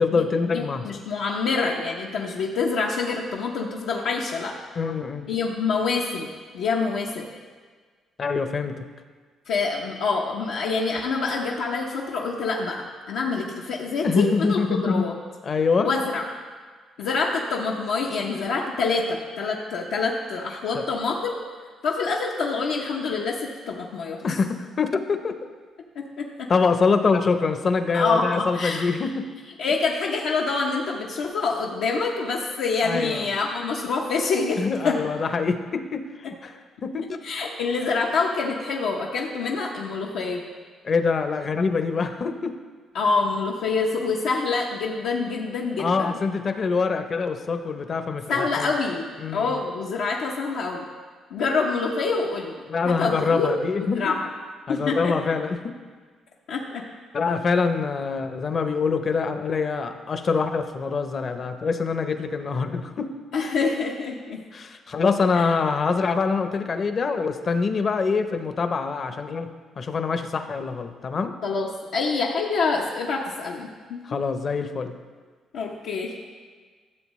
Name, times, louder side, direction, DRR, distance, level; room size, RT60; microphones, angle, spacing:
voice 1, 0.0-1.1 4.8-5.3 8.2-8.9 14.0-15.1 15.4-15.9 20.7-20.8 24.2-25.4 26.5-29.4 32.8-33.3 34.6-36.1 36.4-36.6 36.8-37.2 40.8-42.5 45.8-48.7 49.2-49.6 52.7-54.2 54.7-55.8 57.1-63.1 64.5-69.5 69.8-71.3 74.0-74.9, left 4 dB, 45° left, 8 dB, 0.7 m, -25 dB
voice 2, 0.5-4.6 5.3-7.2 9.5-15.2 15.8-16.3 17.0-21.4 21.8-24.4 26.0-26.5 27.9-28.9 29.6-35.0 37.2-40.4 42.9-46.2 48.3-50.9 51.3-52.5 52.8-54.3 54.7-55.3 56.5-56.8 63.3-64.4 65.3-65.4 71.4-74.0 75.5-76.1, left 4 dB, 90° left, -2 dB, 0.7 m, -26 dB
13.0 x 7.3 x 3.1 m, 1.5 s
cardioid pair, 90°, 0 cm